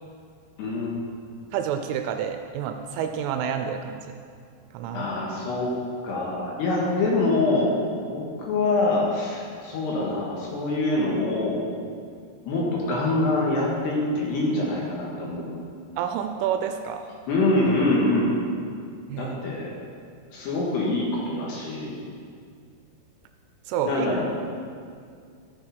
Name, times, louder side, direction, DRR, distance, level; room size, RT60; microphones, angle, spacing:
voice 1, 0.6-0.9 4.9-5.7 6.0-11.7 12.4-15.5 17.3-18.3 19.2-19.7 20.3-22.0 23.9-24.3, left 2 dB, 65° left, -3 dB, 3.1 m, -25 dB
voice 2, 1.5-4.0 4.7-5.1 16.0-17.0 19.1-19.4 23.7-24.1, right 8 dB, 85° right, 6 dB, 2.9 m, -28 dB
13.5 x 6.5 x 5.7 m, 2.2 s
omnidirectional pair, 5.9 m